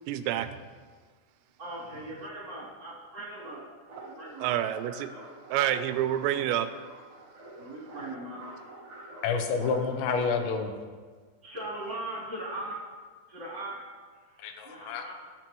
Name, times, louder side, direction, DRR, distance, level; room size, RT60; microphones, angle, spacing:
voice 1, 0.1-0.5 4.4-5.1 5.5-6.7, right 12 dB, 90° right, 11 dB, 2.9 m, -28 dB
voice 2, 1.6-3.6 4.0-4.6 7.5-8.4 10.2-10.3 11.4-12.8 13.3-13.8 14.1-15.1, right 1 dB, 25° right, -6 dB, 3.4 m, -39 dB
sound 1, 3.3-10.3, right 2 dB, 70° right, 1.2 m, -47 dB
voice 3, 9.2-10.7 14.4-15.1, left 5 dB, 85° left, 5 dB, 3.1 m, -29 dB
20.5 x 7.2 x 3.1 m, 1.5 s
omnidirectional pair, 5.0 m